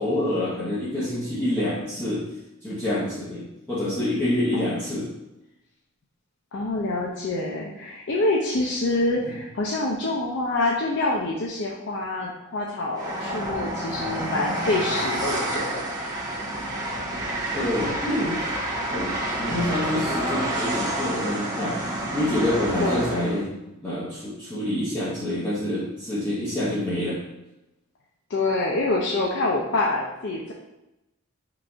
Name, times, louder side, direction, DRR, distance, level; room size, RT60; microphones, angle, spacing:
voice 1, 0.0-2.3 2.6-5.1 17.5-18.6 18.9-21.8 22.1-23.5 23.8-27.2, left 1 dB, 10° left, -11 dB, 0.8 m, -27 dB
voice 2, 6.5-15.8 22.8-23.1 28.3-30.5, left 2 dB, 55° left, -2 dB, 0.5 m, -26 dB
Train, 12.9-23.4, right 1 dB, 20° right, 0.7 m, -29 dB
3.9 x 2.5 x 4.4 m, 0.95 s
head